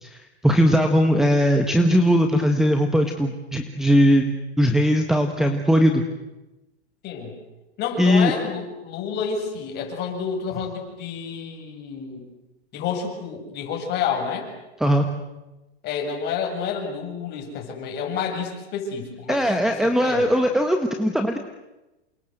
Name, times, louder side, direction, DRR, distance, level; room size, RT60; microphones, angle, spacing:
voice 1, 0.0-6.0 8.0-8.3 14.8-15.1 19.3-21.4, equal, ahead, 6 dB, 1.5 m, -19 dB
voice 2, 7.0-7.3 7.8-12.2 12.7-14.5 15.8-20.3, left 6 dB, 30° left, 2 dB, 7.6 m, -29 dB
28.5 x 25.5 x 8.0 m, 1.0 s
supercardioid pair, 150°, 33 cm